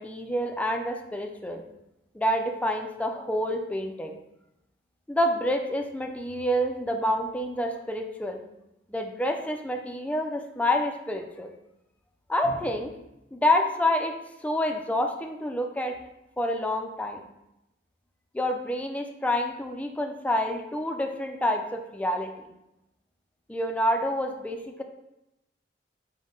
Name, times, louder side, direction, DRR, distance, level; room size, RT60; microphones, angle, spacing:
voice 1, 0.0-1.6 2.1-4.2 5.1-8.4 8.9-11.5 12.3-13.0 13.3-14.2 14.4-15.9 16.4-17.3 18.3-22.3 23.5-24.8, left 1 dB, 10° left, 4 dB, 0.3 m, -28 dB
5.2 x 2.1 x 3.7 m, 0.88 s
head